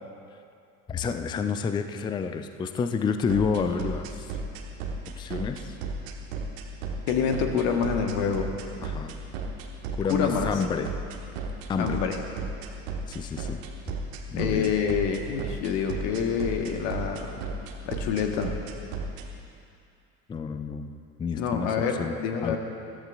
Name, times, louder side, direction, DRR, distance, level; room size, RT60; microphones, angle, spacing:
voice 1, 0.9-4.2 5.2-5.7 8.8-9.2 10.0-10.9 11.7-12.0 13.1-13.6 14.3-14.7 20.3-20.9 21.2-21.7 22.0-22.1 22.4-22.6, left 5 dB, 10° left, 8 dB, 0.5 m, -29 dB
sound 1, 3.3-19.2, right 4 dB, 55° right, 1.5 m, -33 dB
voice 2, 7.1-8.5 10.1-10.6 11.8-12.2 14.3-17.4 17.9-18.6 21.3-22.6, left 6 dB, 50° left, 4 dB, 1.5 m, -27 dB
22.0 x 14.0 x 2.5 m, 2.5 s
figure-of-eight pair, 70°, 46 cm